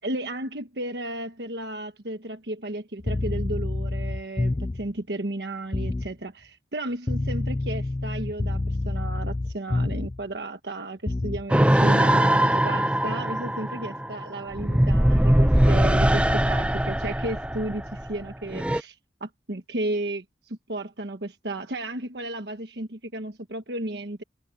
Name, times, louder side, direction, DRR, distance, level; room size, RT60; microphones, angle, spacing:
voice 1, 0.0-24.2, right 1 dB, 70° right, 1.4 m, -34 dB
sound 1, 3.0-4.9 5.7-6.1 7.1-10.2 11.1-11.5, left 2 dB, 20° left, 0.3 m, -28 dB
sound 2, 11.5-18.8, right 1 dB, 5° right, 0.8 m, -21 dB
head